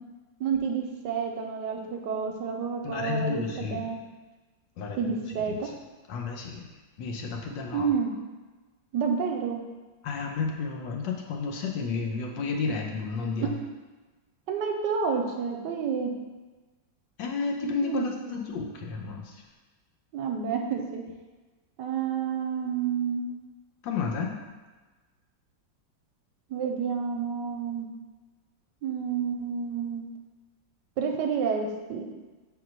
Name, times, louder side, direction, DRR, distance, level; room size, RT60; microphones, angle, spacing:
voice 1, 0.4-4.0 5.0-5.7 7.7-8.1 8.9-9.6 13.4-13.7 14.5-16.1 17.8-18.1 20.1-21.0 21.8-23.3 26.5-27.9 28.8-30.0 31.0-32.1, right 6 dB, 75° right, 2 dB, 1.2 m, -29 dB
voice 2, 2.8-3.9 4.8-5.7 6.1-6.7 7.0-7.9 10.0-13.5 17.2-19.4 23.8-24.4, left 4 dB, 80° left, 1 dB, 1.4 m, -32 dB
4.3 x 4.3 x 5.3 m, 1.3 s
omnidirectional pair, 2.1 m